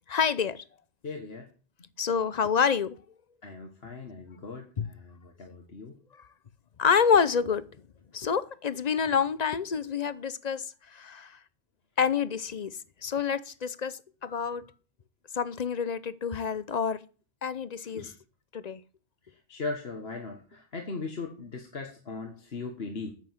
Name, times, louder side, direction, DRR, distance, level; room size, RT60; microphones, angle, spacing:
voice 1, 0.1-0.6 2.0-3.0 4.8-4.9 6.2-6.3 6.8-7.7 8.1-11.4 12.0-14.7 15.3-17.0 17.4-18.1 18.5-18.8, left 6 dB, 45° left, 0.7 m, -28 dB
voice 2, 1.0-1.5 3.4-5.9 17.9-18.1 19.3-23.1, left 3 dB, 60° left, 1.7 m, -39 dB
9.3 x 7.8 x 8.0 m
omnidirectional pair, 1.2 m